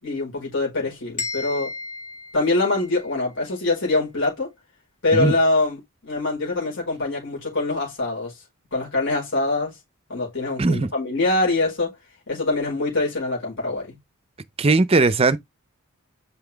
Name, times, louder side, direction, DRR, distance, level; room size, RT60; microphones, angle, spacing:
voice 1, 0.0-1.7 2.3-4.5 5.0-8.3 8.7-9.7 10.1-11.9 12.3-14.0, left 2 dB, 55° left, 4.9 m, -24 dB
sound 1, 1.2-3.2, left 3 dB, 35° left, 4.1 m, -34 dB
voice 2, 10.6-10.9 14.6-15.4, right 3 dB, 25° right, 0.5 m, -18 dB
5.9 x 5.7 x 3.4 m
head